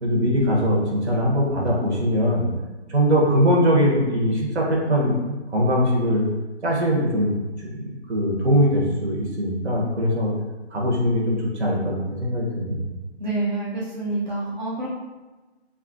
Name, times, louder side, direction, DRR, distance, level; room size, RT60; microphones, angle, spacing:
voice 1, 0.0-2.5 2.9-6.2 6.6-10.3 10.7-12.9, equal, 80° right, -3 dB, 1.0 m, -21 dB
voice 2, 13.2-14.9, right 2 dB, 45° right, -7 dB, 0.6 m, -27 dB
2.8 x 2.4 x 2.5 m, 1.2 s
hypercardioid pair, 180°, 34 cm